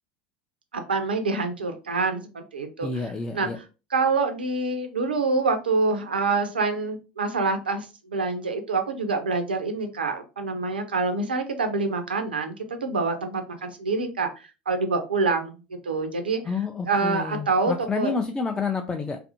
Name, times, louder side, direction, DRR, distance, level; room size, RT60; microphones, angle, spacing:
voice 1, 0.7-3.6 3.9-14.3 14.7-15.6 15.8-16.4 16.9-18.1, right 3 dB, 80° right, 7 dB, 0.5 m, -26 dB
voice 2, 2.8-3.6 16.4-19.2, left 4 dB, 15° left, 3 dB, 0.3 m, -29 dB
2.6 x 2.5 x 2.6 m, 0.31 s
figure-of-eight pair, 75°, 5 cm